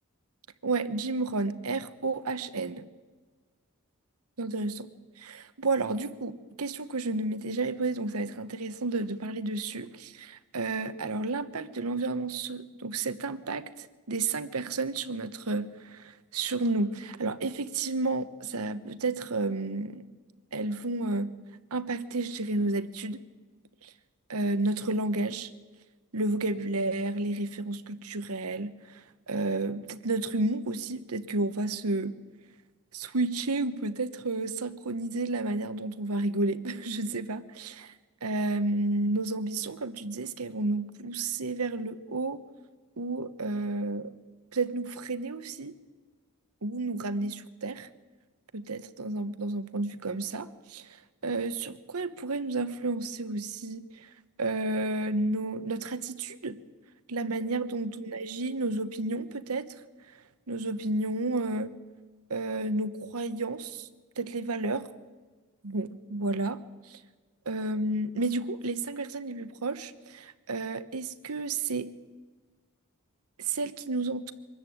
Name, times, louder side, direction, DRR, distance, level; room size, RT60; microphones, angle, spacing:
voice 1, 0.6-2.9 4.4-4.9 5.2-20.1 20.5-21.3 21.7-23.2 23.8-23.9 24.3-25.5 26.1-29.0 29.3-32.1 32.9-37.9 38.2-42.4 43.0-44.1 44.5-45.7 46.6-47.9 48.5-51.0 51.2-54.1 54.4-56.6 57.1-59.7 60.5-61.7 62.3-63.9 64.2-64.9 65.6-66.6 66.9-67.0 67.5-71.9 73.4-74.3, right 2 dB, 80° right, 12 dB, 1.1 m, -31 dB
24.5 x 13.5 x 9.4 m, 1.4 s
head